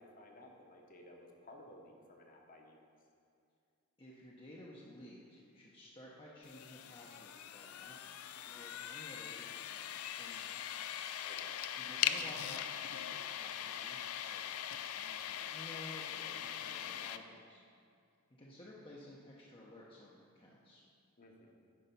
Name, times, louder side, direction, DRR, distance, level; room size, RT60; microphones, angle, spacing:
voice 1, 0.0-2.8 11.2-11.6 21.2-21.5, left 1 dB, 40° left, 1 dB, 1.1 m, -56 dB
voice 2, 4.0-8.0 8.3-10.6 11.8-14.4 14.8-17.6 18.4-20.8, left 1 dB, 25° left, -5 dB, 0.8 m, -54 dB
sound 1, 6.4-17.2, left 10 dB, 75° left, 0.4 m, -41 dB
10.0 x 5.3 x 5.3 m, 2.3 s
head